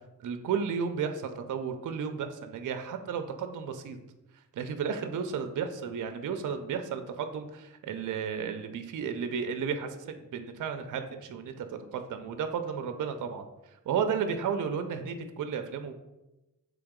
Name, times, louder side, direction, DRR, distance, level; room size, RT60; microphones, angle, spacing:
voice 1, 0.2-4.0 4.5-13.4 13.9-15.9, right 6 dB, 60° right, 8 dB, 0.5 m, -33 dB
3.8 x 3.4 x 3.6 m, 0.97 s
cardioid pair, 80°, 35 cm